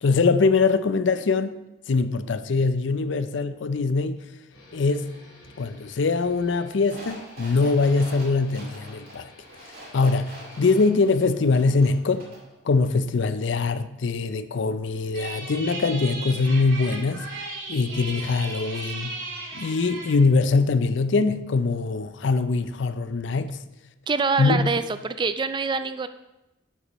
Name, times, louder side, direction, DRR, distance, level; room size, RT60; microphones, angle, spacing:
voice 1, 0.0-1.6 1.9-4.2 4.7-5.1 5.6-9.3 9.9-12.3 12.6-17.2 17.7-19.1 19.5-23.5 24.4-24.7, left 4 dB, 65° left, 0.5 m, -22 dB
sound 1, 4.5-10.9, left 2 dB, 90° left, 2.3 m, -51 dB
sound 2, 6.9-12.5 12.8-12.9, right 1 dB, 45° right, 2.4 m, -44 dB
sound 3, 15.1-20.1, right 3 dB, 75° right, 2.2 m, -36 dB
voice 2, 24.1-26.1, right 4 dB, 25° right, 0.3 m, -25 dB
9.9 x 8.2 x 3.0 m
head